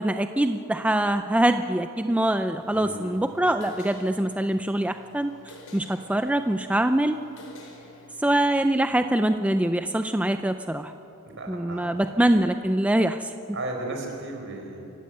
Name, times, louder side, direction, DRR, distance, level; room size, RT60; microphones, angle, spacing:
voice 1, 0.0-5.3 5.7-7.2 8.2-10.9 11.5-13.3, right 1 dB, 5° right, 8 dB, 0.5 m, -24 dB
sound 1, 2.6-8.5, left 1 dB, 75° left, 5.2 m, -50 dB
voice 2, 2.7-3.0 11.3-12.1 13.5-14.8, right 2 dB, 60° right, 2 dB, 4.8 m, -35 dB
27.5 x 16.0 x 8.0 m, 2.8 s
head